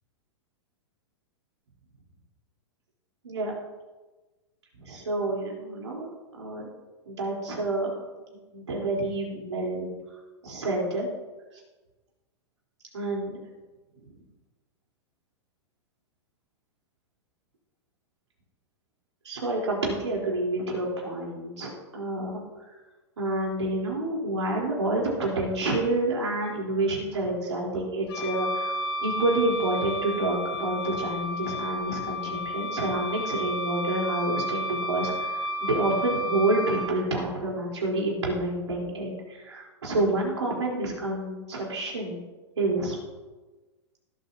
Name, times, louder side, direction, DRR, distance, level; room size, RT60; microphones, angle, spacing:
voice 1, 4.8-6.1 6.4-6.7 7.1-7.9 8.5-9.9 10.4-11.1 12.9-13.4 19.2-22.4 22.7-22.8 23.2-28.7 29.0-42.2 42.6-42.9, right 2 dB, 85° right, -2 dB, 4.3 m, -28 dB
Wind instrument woodwind instrument, 28.1-36.9, equal, 60° left, 1.6 m, -32 dB
19.5 x 8.3 x 3.0 m, 1.2 s
hypercardioid pair, 110°, 15 cm